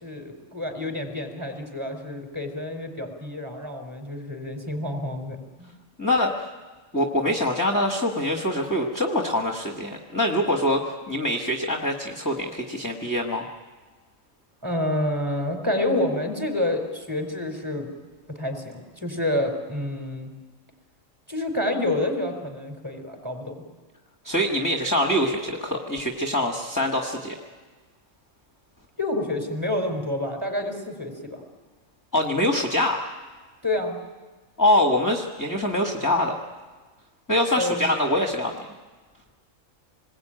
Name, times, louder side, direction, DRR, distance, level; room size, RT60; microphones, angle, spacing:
voice 1, 0.0-5.7 14.6-17.9 18.3-20.3 21.3-23.6 29.0-31.4 33.6-34.0 37.6-37.9, left 1 dB, 15° right, 4 dB, 4.3 m, -28 dB
voice 2, 6.0-6.3 6.9-13.5 24.2-27.4 32.1-33.0 34.6-36.3 37.3-38.5, left 1 dB, 15° left, 2 dB, 1.6 m, -24 dB
27.0 x 21.0 x 9.0 m, 1.3 s
omnidirectional pair, 1.4 m